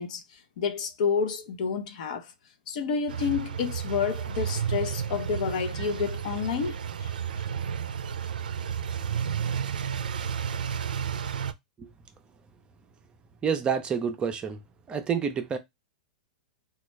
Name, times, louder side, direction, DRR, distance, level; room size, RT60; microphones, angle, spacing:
voice 1, 0.0-2.3 2.7-6.8 7.0-7.4, left 6 dB, 60° left, 0.6 m, -30 dB
sound 1, 3.1-11.5, right 7 dB, 85° right, 0.4 m, -32 dB
voice 2, 13.4-14.6 14.9-15.6, right 6 dB, 20° right, 0.5 m, -28 dB
3.1 x 2.3 x 3.1 m
hypercardioid pair, 120°, 5 cm